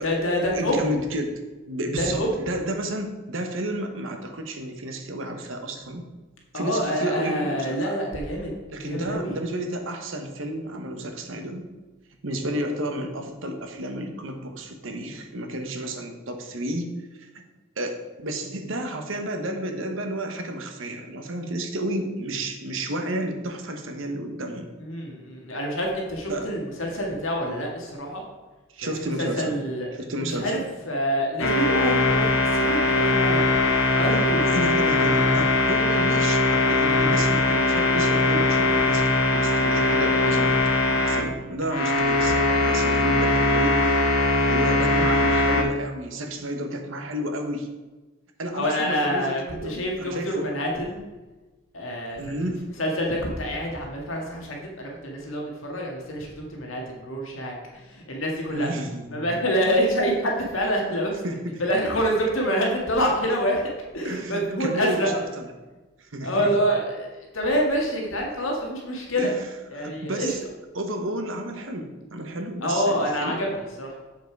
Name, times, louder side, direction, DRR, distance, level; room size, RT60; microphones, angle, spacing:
voice 1, 0.0-0.8 2.0-2.3 6.5-8.5 8.8-9.3 24.8-28.2 28.8-28.9 29.2-29.9 30.2-30.6 30.9-33.5 34.0-34.5 48.5-51.0 51.7-52.3 52.8-57.5 57.8-58.7 59.1-61.1 61.6-65.1 66.2-67.1 67.3-69.3 69.7-70.3 72.6-74.0, equal, 75° left, 0 dB, 1.8 m, -26 dB
voice 2, 0.5-1.3 1.7-6.0 6.5-8.0 8.7-11.7 12.2-17.4 17.8-24.7 26.3-26.5 28.7-29.6 29.9-30.6 34.4-40.6 40.9-44.1 44.5-47.7 48.4-50.6 52.2-52.6 58.5-59.3 61.2-61.6 64.0-65.4 66.0-66.5 69.2-69.5 69.7-70.4 70.7-73.4, right 1 dB, 70° right, 5 dB, 1.2 m, -31 dB
sound 1, 31.4-41.2 41.6-45.6, left 2 dB, 90° left, 1.4 m, -21 dB
7.8 x 7.1 x 4.7 m, 1.2 s
head